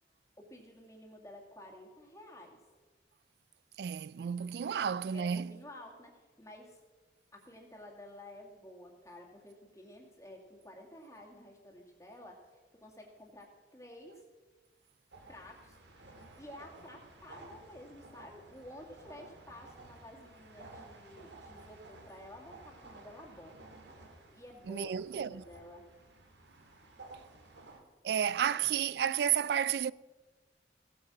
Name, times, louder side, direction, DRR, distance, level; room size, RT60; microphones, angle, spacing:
voice 1, 0.4-2.6 5.1-6.8 7.3-14.2 15.3-23.7 24.3-25.8, left 1 dB, 20° left, 2.1 m, -52 dB
voice 2, 3.8-5.5 24.7-25.4 28.0-29.9, right 8 dB, 70° right, 0.3 m, -31 dB
sound 1, 15.1-27.8, right 2 dB, 90° right, 1.9 m, -54 dB
16.5 x 8.7 x 6.2 m
head